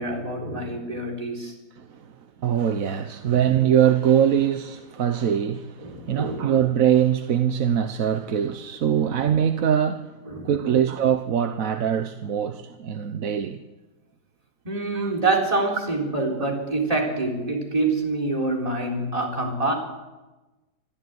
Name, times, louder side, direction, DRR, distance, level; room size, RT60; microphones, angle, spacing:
voice 1, 0.0-1.5 3.2-3.4 5.8-6.4 8.8-9.0 10.3-10.8 14.6-19.7, right 2 dB, 20° right, 4.1 m, -26 dB
voice 2, 1.8-2.1 2.4-10.2 10.4-13.6 14.9-15.1 15.6-15.7, right 9 dB, 60° right, 1.2 m, -22 dB
26.5 x 13.5 x 9.4 m
omnidirectional pair, 1.8 m